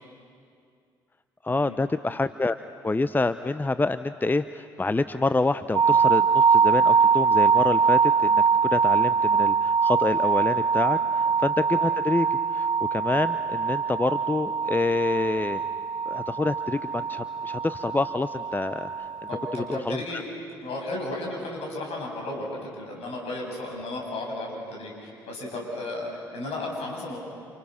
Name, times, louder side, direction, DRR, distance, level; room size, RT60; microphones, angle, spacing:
voice 1, 1.4-2.6 2.8-15.6 16.1-19.1 19.5-20.2, left 3 dB, 15° left, 13 dB, 0.7 m, -27 dB
sound 1, 5.7-19.8, right 5 dB, 40° right, 0.7 m, -23 dB
voice 2, 19.3-20.2 20.6-27.2, left 2 dB, 60° left, 0 dB, 7.4 m, -34 dB
29.0 x 29.0 x 6.3 m, 2.3 s
figure-of-eight pair, 45°, 12 cm